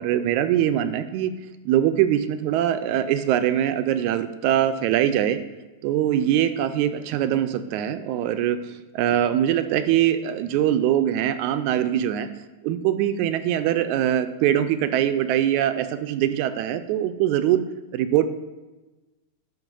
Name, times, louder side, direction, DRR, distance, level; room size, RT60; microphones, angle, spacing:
voice 1, 0.0-1.3 1.7-5.4 5.8-12.3 12.6-17.6 17.9-18.3, right 11 dB, 80° right, 10 dB, 1.9 m, -22 dB
10.5 x 5.9 x 5.3 m, 1.2 s
omnidirectional pair, 3.4 m